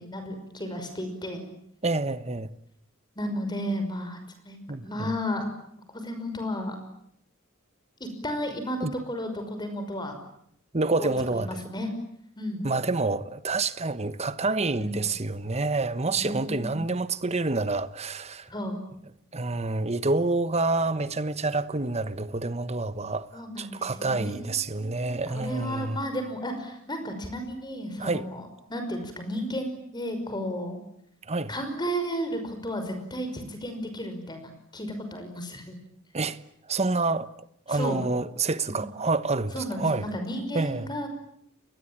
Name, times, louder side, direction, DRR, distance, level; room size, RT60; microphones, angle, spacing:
voice 1, 0.0-1.4 3.2-5.5 5.9-6.8 8.0-10.1 11.0-11.9 12.4-12.7 14.8-15.2 16.1-16.8 18.5-18.8 23.3-30.8 31.5-35.8 37.7-38.0 38.7-38.8 39.5-41.1, equal, 20° left, 5.7 m, -33 dB
voice 2, 1.8-2.5 4.7-5.1 8.8-8.9 10.7-11.6 12.6-18.5 19.3-26.0 28.0-28.3 31.3-31.5 36.1-36.4 36.7-37.3 37.7-40.1 40.5-40.9, right 3 dB, 30° right, 1.2 m, -28 dB
29.5 x 21.5 x 9.0 m
head